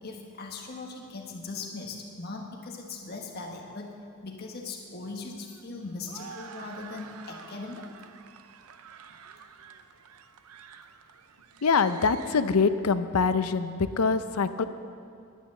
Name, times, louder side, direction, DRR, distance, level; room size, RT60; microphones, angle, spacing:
voice 1, 0.0-3.9 4.2-7.9, left 3 dB, 45° left, 1 dB, 1.3 m, -39 dB
sound 1, 4.4-12.4, right 6 dB, 90° right, 0.6 m, -49 dB
voice 2, 11.6-14.6, left 5 dB, 90° left, 11 dB, 0.6 m, -24 dB
11.0 x 9.1 x 7.3 m, 2.4 s
head